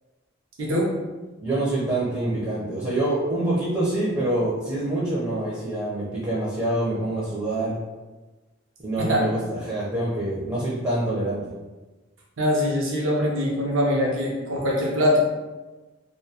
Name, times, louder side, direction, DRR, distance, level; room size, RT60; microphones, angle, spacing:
voice 1, 0.6-0.9 9.0-9.2 12.4-15.2, equal, 80° right, -3 dB, 0.6 m, -23 dB
voice 2, 1.4-7.8 8.8-11.4, right 1 dB, 20° right, -8 dB, 0.4 m, -26 dB
2.3 x 2.2 x 2.7 m, 1.2 s
head